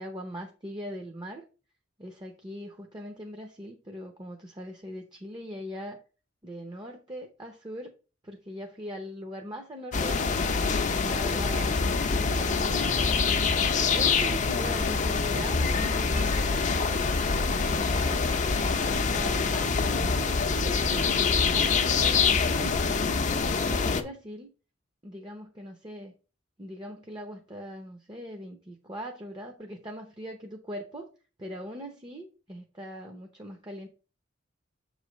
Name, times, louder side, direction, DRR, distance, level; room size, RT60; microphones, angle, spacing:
voice 1, 0.0-1.4 2.0-6.0 6.4-7.9 8.2-10.5 10.9-13.3 13.7-18.3 18.5-23.0 23.5-24.5 25.0-26.1 26.6-31.1 31.4-33.9, equal, 20° right, 4 dB, 0.7 m, -41 dB
sound 1, 9.9-24.0, left 5 dB, 40° left, 0.6 m, -25 dB
7.2 x 3.2 x 5.0 m, 0.34 s
head